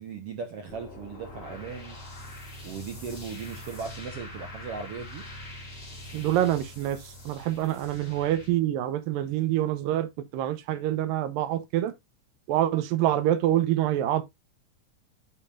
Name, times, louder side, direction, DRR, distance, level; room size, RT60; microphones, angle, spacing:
voice 1, 0.0-2.0 2.6-5.3, right 5 dB, 75° right, 1.4 m, -38 dB
sound 1, 0.7-8.5, left 1 dB, 20° left, 3.7 m, -43 dB
voice 2, 6.1-7.0 7.3-10.1 10.3-11.9 12.5-14.2, right 12 dB, 90° right, 2.6 m, -26 dB
8.9 x 6.6 x 2.4 m
omnidirectional pair, 4.0 m